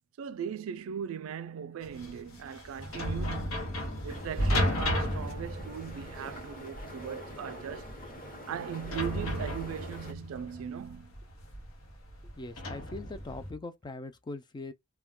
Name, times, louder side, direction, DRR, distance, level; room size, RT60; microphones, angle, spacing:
voice 1, 0.2-7.9 8.5-11.1, right 8 dB, 85° right, 0.3 m, -39 dB
sound 1, 1.8-13.5, left 1 dB, 90° left, 0.9 m, -34 dB
sound 2, 4.1-10.1, equal, 45° left, 0.9 m, -45 dB
voice 2, 12.4-14.7, left 2 dB, 20° left, 0.3 m, -41 dB
2.2 x 2.2 x 3.5 m
head